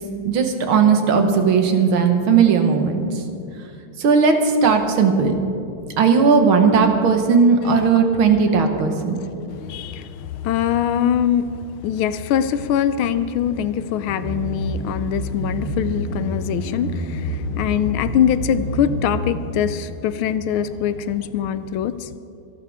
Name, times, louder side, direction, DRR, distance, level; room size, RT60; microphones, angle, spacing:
voice 1, 0.2-3.1 4.0-4.3 4.6-5.3 6.0-9.2, right 5 dB, 70° right, 5 dB, 2.0 m, -16 dB
voice 2, 9.2-11.5 11.8-22.1, left 9 dB, 80° left, 13 dB, 1.4 m, -23 dB
sound 1, 14.0-19.3, right 1 dB, 25° right, 3.7 m, -28 dB
26.0 x 11.5 x 3.5 m, 2.5 s
omnidirectional pair, 2.4 m